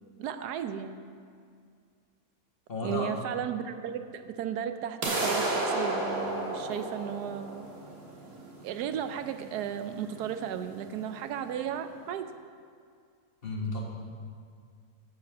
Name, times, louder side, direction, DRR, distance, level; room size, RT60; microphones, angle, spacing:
voice 1, 0.2-1.2 2.8-7.7 8.6-12.3, right 9 dB, 85° right, 9 dB, 1.2 m, -35 dB
voice 2, 2.7-3.2 13.4-13.9, left 2 dB, 40° left, -1 dB, 1.4 m, -32 dB
sound 1, 5.0-11.0, right 2 dB, 65° right, 1.9 m, -33 dB
11.0 x 5.0 x 7.1 m, 2.2 s
omnidirectional pair, 1.7 m